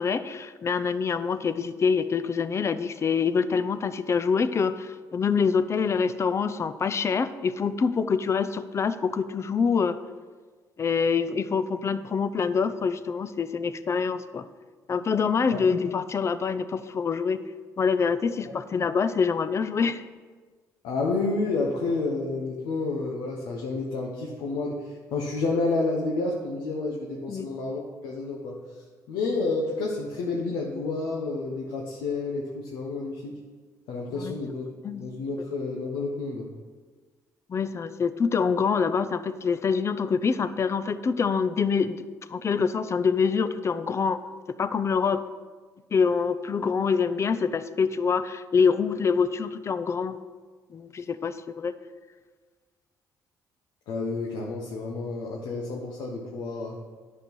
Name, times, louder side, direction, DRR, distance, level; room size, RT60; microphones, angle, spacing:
voice 1, 0.0-10.0 10.8-14.5 14.9-17.4 17.8-20.0 27.3-27.5 34.2-34.4 34.8-35.0 37.5-42.0 42.3-44.2 44.6-45.2 45.9-50.2 50.7-51.7, left 5 dB, 40° left, 12 dB, 0.6 m, -25 dB
voice 2, 20.8-33.3 33.9-34.7 34.9-36.5 53.9-56.8, left 3 dB, 85° left, -2 dB, 1.2 m, -30 dB
10.0 x 6.2 x 5.4 m, 1.5 s
cardioid pair, 80°, 7 cm